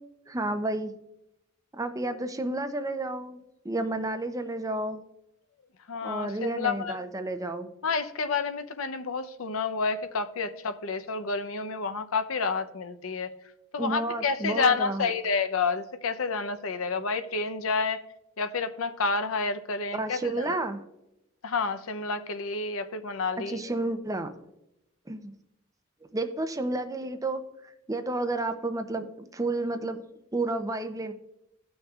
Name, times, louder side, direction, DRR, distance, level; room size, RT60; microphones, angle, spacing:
voice 1, 0.3-0.9 1.7-5.0 6.0-7.7 13.8-15.1 19.9-20.8 23.5-24.3 25.1-25.3 26.1-27.4 27.9-29.1 29.3-30.0 30.3-31.1, right 2 dB, 15° right, 8 dB, 0.6 m, -31 dB
voice 2, 5.9-7.0 7.8-13.3 13.7-18.0 18.4-20.6 21.4-23.6, left 4 dB, 75° left, 10 dB, 0.7 m, -29 dB
16.5 x 6.2 x 2.4 m, 0.89 s
head